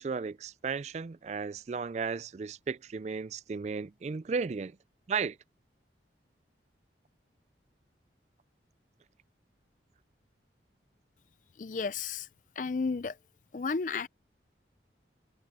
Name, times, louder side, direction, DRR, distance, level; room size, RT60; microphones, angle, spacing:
voice 1, 0.0-4.7 5.1-5.4, right 5 dB, 40° right, 0.3 m, -34 dB
voice 2, 11.6-12.3 12.6-13.2 13.5-14.1, left 4 dB, 45° left, 0.4 m, -32 dB
head